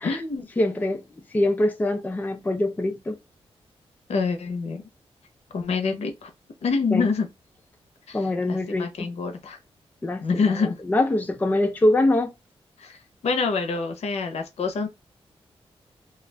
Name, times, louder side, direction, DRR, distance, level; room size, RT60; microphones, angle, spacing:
voice 1, 0.0-0.5 4.1-4.8 5.5-6.3 6.6-7.3 8.1-9.6 10.2-10.7 12.8-13.0 13.2-14.9, left 4 dB, 85° left, 0.8 m, -26 dB
voice 2, 0.6-1.0 1.3-3.2 6.9-7.1 8.1-9.1 10.0-10.2 10.6-12.3, left 1 dB, 15° left, 0.4 m, -23 dB
2.4 x 2.4 x 3.2 m
wide cardioid pair, 120°, 11 cm